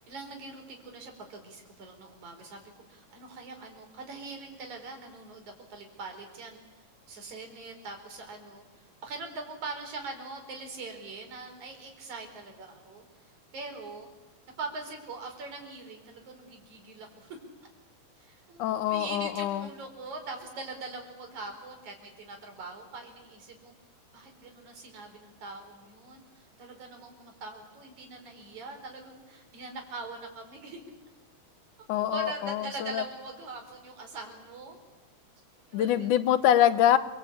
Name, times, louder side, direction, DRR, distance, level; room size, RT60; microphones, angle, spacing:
voice 1, 0.1-6.6 7.1-8.6 9.0-13.0 13.5-14.1 14.6-17.4 18.2-23.7 24.1-30.8 32.0-34.8 35.7-36.1, right 3 dB, 70° right, 3 dB, 5.9 m, -42 dB
voice 2, 18.6-19.7 31.9-33.0 35.7-37.0, left 11 dB, 85° left, 13 dB, 2.6 m, -25 dB
28.5 x 24.5 x 8.6 m, 1.1 s
omnidirectional pair, 3.5 m